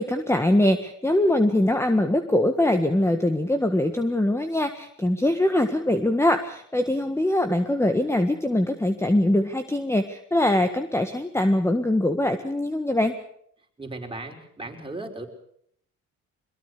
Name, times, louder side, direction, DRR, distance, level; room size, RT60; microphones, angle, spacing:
voice 1, 0.0-13.1, left 1 dB, 10° left, 8 dB, 1.6 m, -22 dB
voice 2, 13.8-15.3, right 2 dB, 15° right, 3 dB, 5.1 m, -36 dB
23.0 x 21.5 x 6.8 m, 0.67 s
cardioid pair, 90°, 30 cm